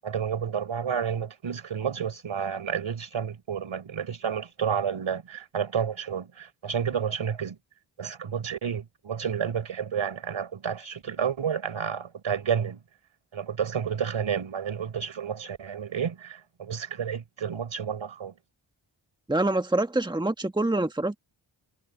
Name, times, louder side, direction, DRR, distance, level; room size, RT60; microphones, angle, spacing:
voice 1, 0.0-7.6 8.0-12.8 13.3-18.3, right 7 dB, 75° right, 4.7 m, -30 dB
voice 2, 19.3-21.2, right 2 dB, 10° right, 1.5 m, -25 dB
wide cardioid pair, 90°, 47 cm